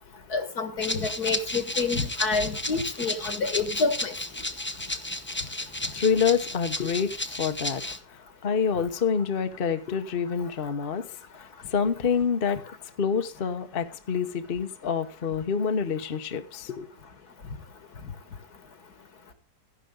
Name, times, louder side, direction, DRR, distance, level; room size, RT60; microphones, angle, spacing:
voice 1, 0.3-4.1, left 4 dB, 70° left, 9 dB, 2.3 m, -28 dB
Rattle (instrument), 0.8-8.0, left 2 dB, 15° left, 0.4 m, -33 dB
voice 2, 5.9-7.8 8.1-11.1 11.3-12.6 13.0-16.9, left 6 dB, 40° left, 7 dB, 1.0 m, -27 dB
14.0 x 11.0 x 3.8 m, 0.32 s
omnidirectional pair, 1.7 m